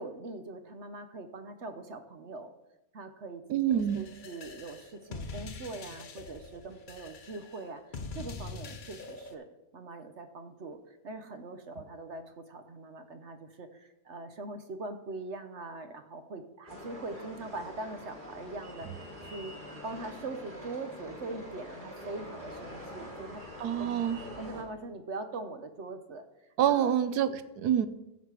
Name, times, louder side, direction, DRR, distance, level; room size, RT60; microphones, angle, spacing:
voice 1, 0.0-2.5 2.9-9.4 9.7-23.4 23.8-26.9, right 3 dB, 55° right, 8 dB, 1.0 m, -42 dB
voice 2, 3.5-4.0 23.6-24.2 26.6-27.9, right 10 dB, 90° right, 12 dB, 1.3 m, -27 dB
sound 1, 3.7-9.3, left 3 dB, 40° left, 0.8 m, -44 dB
sound 2, 16.7-24.6, left 1 dB, 35° right, 2.3 m, -45 dB
15.0 x 6.1 x 4.8 m, 0.93 s
omnidirectional pair, 1.6 m